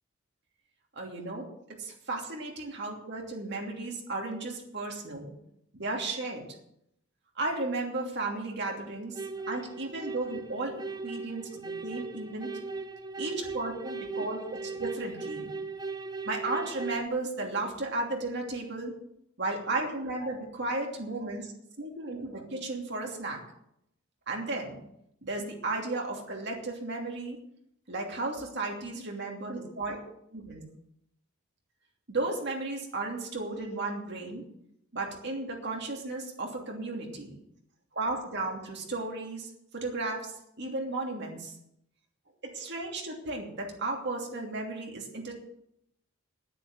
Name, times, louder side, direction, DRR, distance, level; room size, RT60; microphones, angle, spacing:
voice 1, 0.9-1.5 1.8-5.3 5.7-6.4 7.4-9.2 9.5-10.7 11.0-12.5 13.2-15.5 16.2-18.9 19.4-21.5 21.8-23.4 24.3-24.8 25.2-27.4 27.9-30.0 30.3-30.6 32.1-34.4 34.9-37.4 37.9-41.5 42.4-45.4, right 2 dB, 55° right, 0 dB, 2.8 m, -34 dB
sound 1, 9.2-17.1, right 4 dB, 20° right, 0.5 m, -38 dB
9.9 x 9.8 x 7.9 m, 0.76 s
head